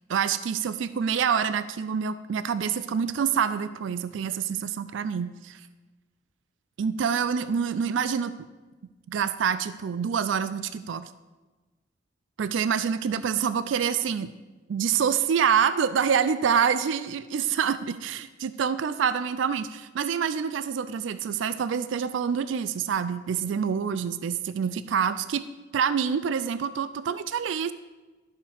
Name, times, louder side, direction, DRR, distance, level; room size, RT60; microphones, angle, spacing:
voice 1, 0.1-5.6 6.8-8.3 9.1-11.1 12.4-14.3 14.7-27.7, right 7 dB, 85° right, 13 dB, 0.4 m, -26 dB
12.0 x 6.5 x 3.5 m, 1.2 s
head